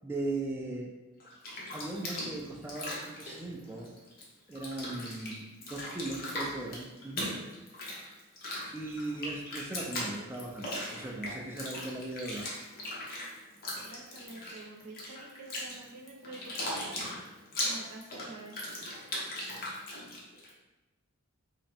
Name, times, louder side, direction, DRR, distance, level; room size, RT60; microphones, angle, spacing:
voice 1, 0.0-0.9 1.7-3.9 4.5-7.4 8.7-12.5, right 2 dB, 10° right, -2 dB, 0.3 m, -38 dB
Bathtub (filling or washing), 1.2-4.2 4.5-20.5, left 1 dB, 40° left, 0.7 m, -39 dB
voice 2, 13.8-17.0 17.6-18.9, right 2 dB, 85° right, 1 dB, 0.6 m, -48 dB
3.3 x 2.0 x 4.1 m, 1.1 s
head